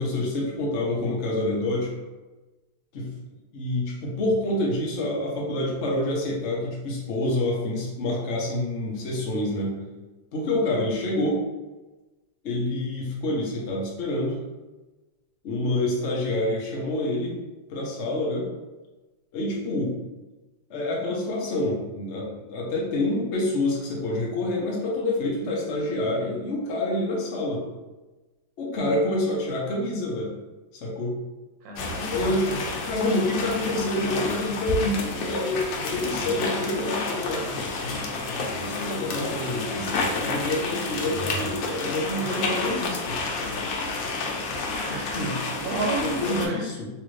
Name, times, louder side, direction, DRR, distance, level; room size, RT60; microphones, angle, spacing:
voice 1, 0.0-1.9 2.9-3.1 3.5-9.8 10.3-11.4 12.4-14.4 15.4-17.4 17.7-18.5 19.3-19.9 20.7-27.6 28.6-30.3 30.7-31.2 32.1-37.4 38.6-43.2 44.9-45.4 46.0-46.9, left 1 dB, 55° left, -3 dB, 0.8 m, -27 dB
voice 2, 31.6-32.3 42.2-42.9 44.6-46.6, right 2 dB, 85° right, 1 dB, 1.4 m, -32 dB
sound 1, 31.8-46.5, left 3 dB, 85° left, 1.3 m, -30 dB
3.3 x 2.5 x 3.1 m, 1.1 s
omnidirectional pair, 2.0 m